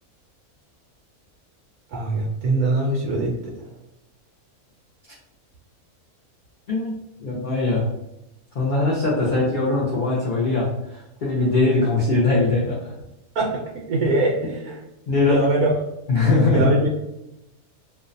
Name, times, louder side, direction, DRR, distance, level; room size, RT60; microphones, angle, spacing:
voice 1, 1.9-3.7 13.3-14.8 15.3-15.8 16.5-17.0, right 2 dB, 80° right, -2 dB, 1.0 m, -22 dB
voice 2, 6.7-7.9 8.5-12.9 15.1-15.4 16.1-16.7, left 3 dB, 75° left, -6 dB, 0.4 m, -21 dB
2.6 x 2.0 x 2.5 m, 0.90 s
omnidirectional pair, 1.6 m